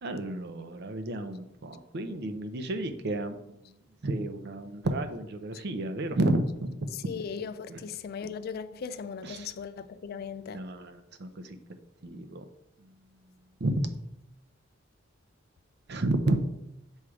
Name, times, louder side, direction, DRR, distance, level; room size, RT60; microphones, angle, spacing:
voice 1, 0.0-3.6 4.0-7.1 7.7-7.8 9.2-9.5 10.5-11.6 12.0-12.4 12.8-12.9 13.6-13.9 15.9-16.4, right 1 dB, 60° right, 0.6 m, -31 dB
voice 2, 6.9-10.6, left 6 dB, 50° left, 0.3 m, -38 dB
7.1 x 3.2 x 4.8 m
head